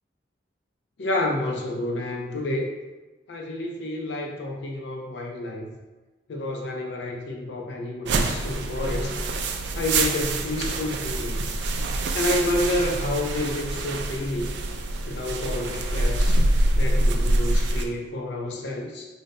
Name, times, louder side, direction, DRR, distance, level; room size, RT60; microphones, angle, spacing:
voice 1, 1.0-2.7 3.3-5.7 6.3-9.1 9.7-11.5 12.1-14.5 15.1-16.4 16.8-19.1, left 1 dB, 75° left, 1 dB, 0.5 m, -29 dB
sound 1, 8.0-17.9, right 2 dB, 70° right, 0.3 m, -25 dB
2.7 x 2.1 x 3.9 m, 1.2 s
head